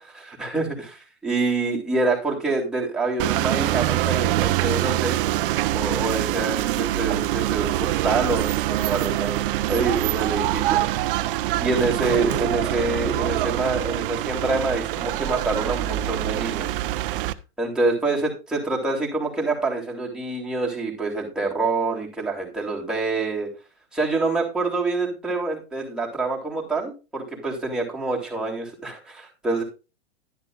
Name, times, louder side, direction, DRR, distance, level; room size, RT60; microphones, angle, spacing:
voice 1, 0.4-5.2 5.7-9.4 9.7-11.3 11.6-16.8 17.6-23.5 23.9-29.6, right 3 dB, ahead, -4 dB, 3.3 m, -26 dB
sound 1, 3.2-17.3, right 15 dB, 55° right, 0.7 m, -24 dB
11.0 x 10.5 x 2.5 m, 0.31 s
hypercardioid pair, 115°, 33 cm